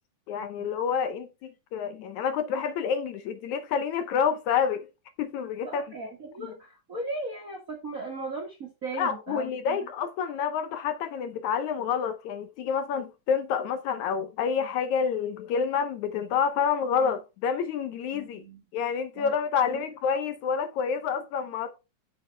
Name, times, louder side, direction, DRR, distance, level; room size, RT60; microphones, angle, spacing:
voice 1, 0.3-4.9 5.2-5.8 6.4-6.5 8.9-18.4 18.7-21.8, left 7 dB, 70° left, 2.1 m, -28 dB
voice 2, 5.6-9.8 18.1-18.6 19.1-19.3 19.6-19.8, right 2 dB, 40° right, 1.2 m, -37 dB
8.0 x 6.6 x 3.3 m
omnidirectional pair, 3.7 m